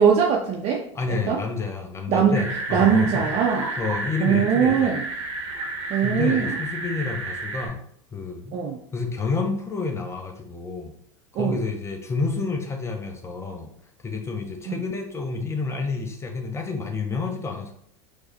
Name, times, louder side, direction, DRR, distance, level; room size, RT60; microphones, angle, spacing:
voice 1, 0.0-1.4 2.1-2.4 2.7-3.6 4.2-5.0 5.9-6.5 8.5-8.8 11.4-11.6 14.7-14.8, right 7 dB, 40° right, 0 dB, 0.4 m, -21 dB
voice 2, 0.9-3.3 3.8-4.9 6.0-7.8 8.1-8.5 8.9-10.9 11.3-13.7 14.0-17.7, left 4 dB, 15° left, 4 dB, 0.6 m, -29 dB
sound 1, 2.3-7.7, right 2 dB, 75° right, 0.7 m, -31 dB
4.7 x 2.0 x 2.8 m, 0.67 s
hypercardioid pair, 95°, 16 cm